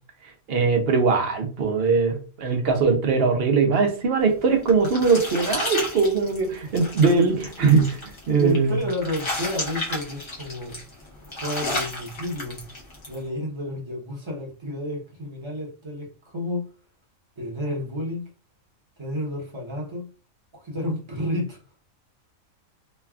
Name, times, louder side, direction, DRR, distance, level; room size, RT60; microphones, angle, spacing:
voice 1, 0.5-7.9 8.3-8.8, right 4 dB, 55° right, 0.8 m, -21 dB
sound 1, 4.3-13.2, left 1 dB, 35° left, 0.5 m, -33 dB
voice 2, 8.4-10.8 11.3-12.6 13.1-16.7 17.4-18.3 19.0-20.1 20.5-21.6, left 1 dB, 25° right, 0.7 m, -31 dB
3.2 x 2.2 x 2.3 m
omnidirectional pair, 1.5 m